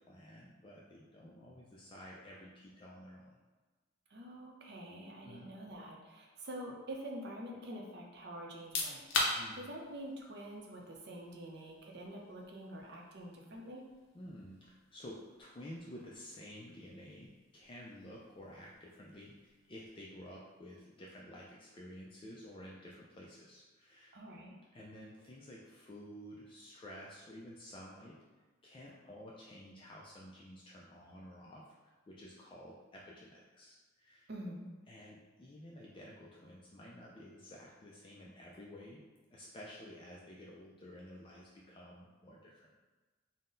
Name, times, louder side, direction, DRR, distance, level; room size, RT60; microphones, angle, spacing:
voice 1, 0.0-3.4 5.2-5.5 9.4-9.6 14.1-24.1 24.7-28.2 28.6-34.3 34.9-39.0 39.3-42.7, left 1 dB, 25° left, -4 dB, 0.4 m, -52 dB
voice 2, 4.1-13.8 24.1-24.5 34.3-34.7, right 1 dB, 55° right, 0 dB, 0.6 m, -46 dB
sound 1, 8.5-21.1, left 2 dB, 70° left, 0.6 m, -44 dB
3.9 x 2.1 x 3.8 m, 1.2 s
head